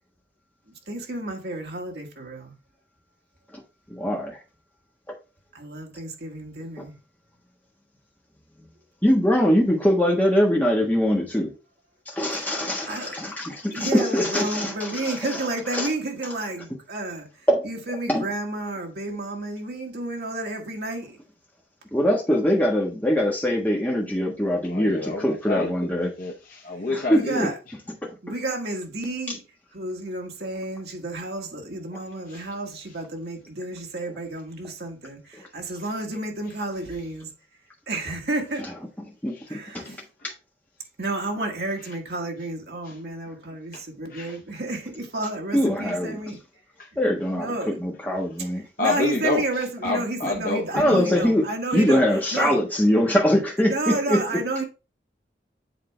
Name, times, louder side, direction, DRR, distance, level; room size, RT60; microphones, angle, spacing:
voice 1, 0.7-2.5 5.5-7.0 12.3-12.4 12.9-13.2 13.7-21.2 27.1-27.6 28.2-29.4 29.7-37.3 37.9-38.7 39.5-40.0 41.0-46.4 47.4-47.8 48.4-52.6 53.6-54.6, right 2 dB, 65° right, 1.5 m, -31 dB
voice 2, 3.9-4.4 9.0-11.5 12.1-15.1 15.7-15.9 17.5-17.7 18.1-18.2 21.9-26.1 26.9-27.5 28.0-28.1 39.2-39.8 45.5-46.2 47.0-48.6 50.7-51.4 51.7-54.2, equal, 10° left, 1.3 m, -22 dB
voice 3, 24.6-27.5 32.3-32.4 39.3-39.4 39.9-40.0 44.1-44.4 46.8-46.9 48.8-49.4 49.8-51.0, left 3 dB, 50° left, 0.8 m, -28 dB
7.8 x 3.7 x 3.4 m
head